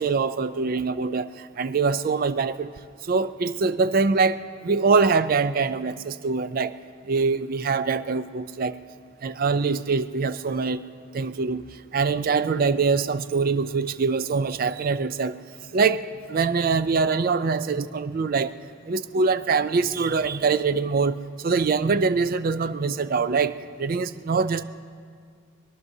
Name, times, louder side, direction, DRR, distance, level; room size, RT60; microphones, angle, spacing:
voice 1, 0.0-2.7 3.0-6.8 7.1-8.8 9.2-10.8 11.1-11.6 11.9-15.4 15.7-18.5 18.9-24.6, right 4 dB, 45° right, 13 dB, 0.4 m, -24 dB
24.5 x 19.5 x 2.7 m, 2.1 s
head